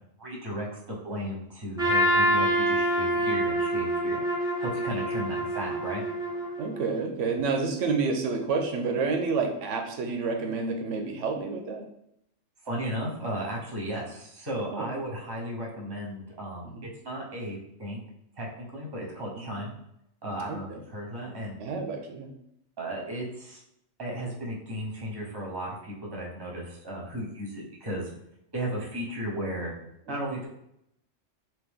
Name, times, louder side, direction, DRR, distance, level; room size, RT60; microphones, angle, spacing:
voice 1, 0.2-6.0 12.6-16.7 17.0-18.0 18.4-19.8 20.2-21.6 22.8-23.6 24.0-28.1 28.5-29.7 30.1-30.5, right 1 dB, 20° right, -2 dB, 0.9 m, -35 dB
Trumpet, 1.8-6.9, right 1 dB, 5° right, 0.6 m, -26 dB
voice 2, 6.6-11.9 14.7-14.9 16.6-16.9 19.4-19.6 20.5-20.8 21.6-22.3, right 4 dB, 85° right, 3 dB, 1.0 m, -29 dB
3.0 x 3.0 x 3.5 m, 0.77 s
omnidirectional pair, 1.2 m